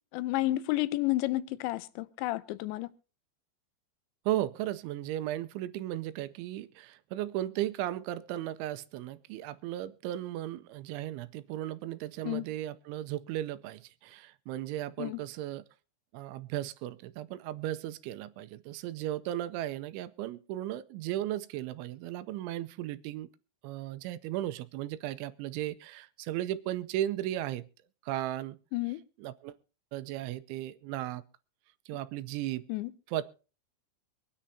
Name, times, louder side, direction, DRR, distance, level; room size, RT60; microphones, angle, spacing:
voice 1, 0.1-2.9 12.2-12.4 15.0-15.2 28.7-29.0 32.7-32.9, left 17 dB, 80° left, 3.0 m, -31 dB
voice 2, 4.3-15.6 16.1-23.3 23.6-27.7 28.1-28.6 29.2-29.6 29.9-31.2 31.9-32.7 33.1-33.2, right 13 dB, 90° right, 3.2 m, -36 dB
24.5 x 9.9 x 2.7 m
omnidirectional pair, 5.3 m